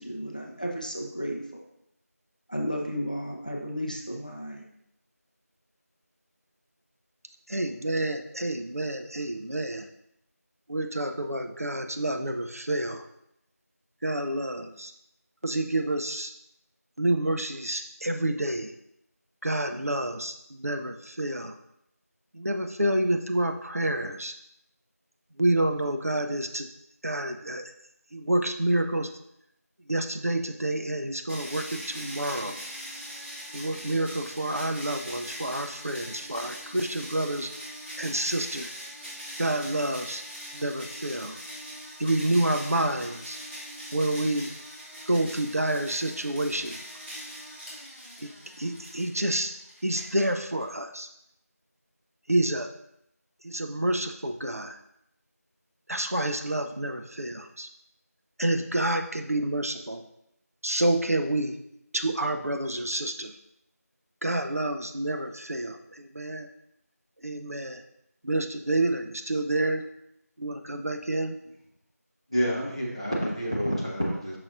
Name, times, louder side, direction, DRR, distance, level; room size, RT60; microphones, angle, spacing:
voice 1, 0.0-1.7 2.5-4.6, equal, 30° left, 0 dB, 0.5 m, -33 dB
voice 2, 7.5-9.9 10.7-13.0 14.0-14.9 15.4-16.3 17.0-18.7 19.4-21.5 22.3-24.3 25.4-26.7 27.0-27.7 28.1-29.1 29.9-32.6 33.5-37.5 38.0-38.7 39.4-40.2 40.5-41.4 42.0-43.4 43.9-44.5 45.1-46.8 48.2-48.3 48.6-49.5 49.8-51.1 52.3-52.7 53.4-54.8 55.9-57.7 58.4-60.0 60.6-61.6 61.9-63.3 64.2-66.5 67.2-67.8 68.2-69.8 70.4-71.4, right 1 dB, 60° right, 6 dB, 0.6 m, -28 dB
sound 1, 31.3-50.6, equal, 40° right, 1.9 m, -41 dB
voice 3, 72.3-74.4, equal, 20° right, -4 dB, 0.8 m, -28 dB
6.6 x 5.8 x 2.5 m, 0.77 s
figure-of-eight pair, 175°, 9 cm